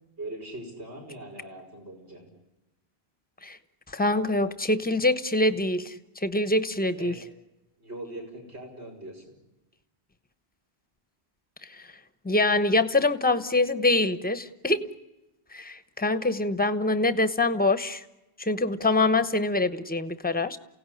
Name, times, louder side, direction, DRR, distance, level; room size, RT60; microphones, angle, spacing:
voice 1, 0.2-2.3 7.0-7.2 7.8-9.2 18.7-18.8, right 1 dB, 85° right, 0 dB, 5.6 m, -41 dB
voice 2, 3.9-7.1 11.7-11.9 12.2-14.9 15.5-18.0 18.4-20.6, left 2 dB, 10° left, 13 dB, 0.9 m, -25 dB
29.0 x 17.0 x 9.9 m, 1.0 s
omnidirectional pair, 1.1 m